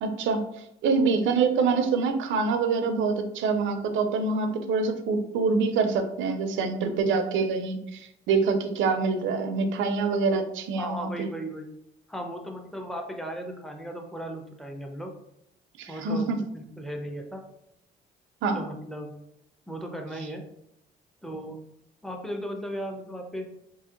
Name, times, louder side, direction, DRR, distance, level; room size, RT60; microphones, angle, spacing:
voice 1, 0.0-0.4 0.8-11.3 15.8-16.4 18.4-18.6, right 4 dB, 80° right, 7 dB, 0.5 m, -25 dB
voice 2, 10.8-11.7 12.1-15.1 15.9-17.4 18.5-19.1 19.7-20.4 21.2-21.6 22.0-23.5, right 1 dB, ahead, 2 dB, 0.5 m, -36 dB
2.9 x 2.7 x 2.5 m, 0.77 s
cardioid pair, 90°, 20 cm